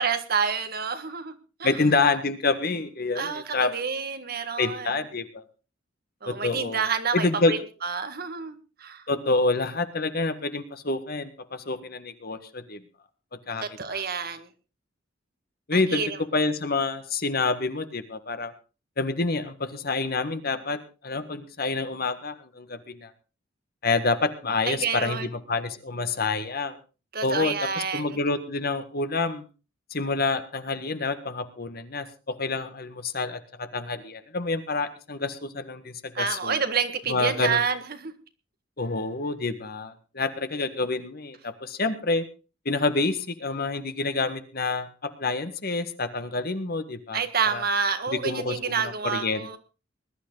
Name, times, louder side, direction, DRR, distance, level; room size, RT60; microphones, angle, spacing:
voice 1, 0.0-1.8 3.2-4.9 6.2-9.1 13.6-14.5 15.7-16.2 24.7-25.3 27.1-28.2 36.2-38.1 47.1-49.6, right 5 dB, 50° right, 9 dB, 1.8 m, -28 dB
voice 2, 1.6-3.7 4.6-5.4 6.2-6.8 7.1-7.5 9.1-12.8 13.5-14.0 15.7-16.0 16.3-18.5 19.0-20.8 21.0-23.1 23.8-26.8 27.2-27.5 27.9-29.5 29.9-36.6 37.1-37.6 38.8-42.2 42.6-44.9 45.2-47.2 47.5-47.6 48.2-49.5, left 3 dB, 50° left, 10 dB, 1.7 m, -27 dB
20.5 x 11.5 x 4.0 m, 0.33 s
head